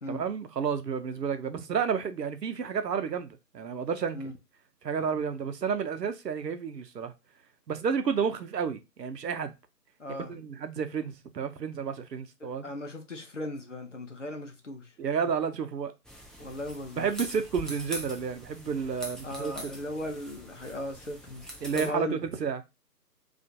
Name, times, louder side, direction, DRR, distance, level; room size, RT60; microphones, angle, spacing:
voice 1, 0.1-4.3 4.8-7.1 7.7-9.5 10.2-12.7 15.0-15.9 17.0-19.5 21.6-22.6, right 6 dB, 80° right, 0.6 m, -31 dB
voice 2, 10.0-10.3 12.4-14.9 16.4-17.1 19.2-21.5 21.7-22.2, left 1 dB, 50° left, 0.6 m, -37 dB
sound 1, 16.1-21.9, equal, ahead, 0.3 m, -43 dB
2.4 x 2.2 x 2.6 m
figure-of-eight pair, 165°, 49 cm